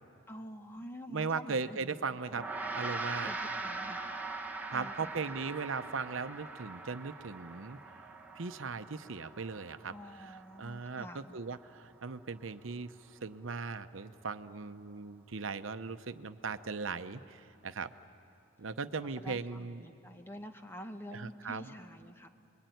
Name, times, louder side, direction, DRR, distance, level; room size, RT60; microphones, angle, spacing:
voice 1, 0.3-2.2 3.1-4.1 4.7-5.1 9.9-11.4 19.2-22.3, equal, 10° left, 6 dB, 1.1 m, -47 dB
voice 2, 1.1-2.4 2.7-3.3 4.7-7.8 8.3-12.9 13.2-17.9 18.6-19.9 21.1-21.6, right 4 dB, 75° right, 10 dB, 0.8 m, -38 dB
Gong, 2.3-11.9, right 3 dB, 10° right, 1.4 m, -42 dB
28.5 x 22.0 x 9.3 m, 2.6 s
head